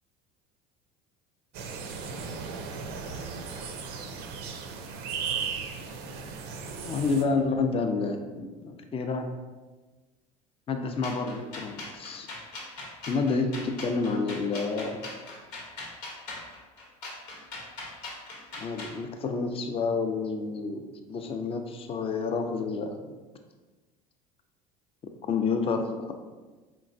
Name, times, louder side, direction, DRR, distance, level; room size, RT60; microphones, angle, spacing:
sound 1, 1.5-7.2, right 5 dB, 55° right, 0.5 m, -36 dB
voice 1, 6.8-9.3 10.7-12.3 13.1-15.0 18.6-23.0 25.3-26.1, left 4 dB, 30° left, 5 dB, 0.5 m, -29 dB
sound 2, 11.0-19.0, left 2 dB, 85° left, 1.0 m, -41 dB
4.2 x 3.0 x 2.6 m, 1.3 s
hypercardioid pair, 80°, 20 cm